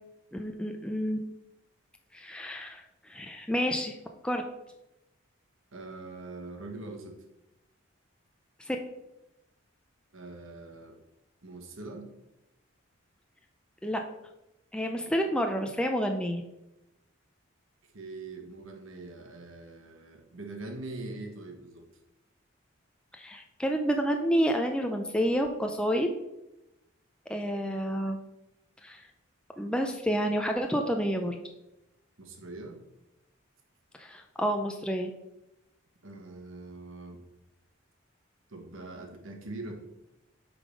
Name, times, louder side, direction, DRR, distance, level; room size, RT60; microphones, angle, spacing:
voice 1, 0.3-1.2 2.1-4.0 4.2-4.4 8.6-8.8 13.8-14.0 14.7-16.4 23.1-26.1 27.3-28.2 28.8-29.1 29.6-31.4 34.0-35.1, equal, 5° left, 3 dB, 0.4 m, -29 dB
voice 2, 5.7-7.2 10.1-11.0 11.4-12.1 17.9-21.8 32.2-32.8 36.0-37.2 38.5-39.7, right 2 dB, 75° right, 3 dB, 1.2 m, -42 dB
8.2 x 3.8 x 5.0 m, 0.93 s
head